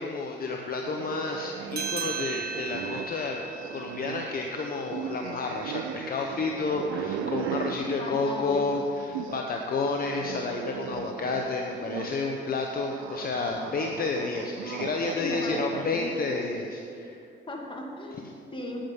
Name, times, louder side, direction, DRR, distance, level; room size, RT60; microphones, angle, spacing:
voice 1, 0.0-3.4 3.7-17.2, left 3 dB, 50° left, 2 dB, 1.0 m, -30 dB
sound 1, 0.8-9.5 9.8-16.6, right 8 dB, 90° right, 0.5 m, -38 dB
sound 2, 1.7-6.6, right 5 dB, 50° right, 1.7 m, -38 dB
voice 2, 7.8-8.7 15.1-16.2 17.5-18.8, left 1 dB, 25° left, 0 dB, 2.3 m, -36 dB
9.4 x 8.9 x 7.3 m, 2.6 s
cardioid pair, 90°, 20 cm